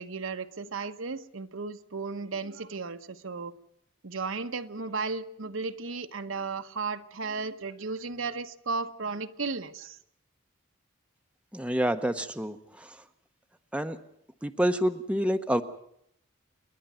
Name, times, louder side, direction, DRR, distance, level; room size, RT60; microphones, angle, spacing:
voice 1, 0.0-3.5 4.0-10.0, right 4 dB, 70° right, 8 dB, 1.0 m, -35 dB
voice 2, 11.5-12.6 13.7-14.0 14.4-15.6, equal, 5° right, 7 dB, 0.8 m, -27 dB
28.0 x 11.0 x 9.2 m, 0.74 s
head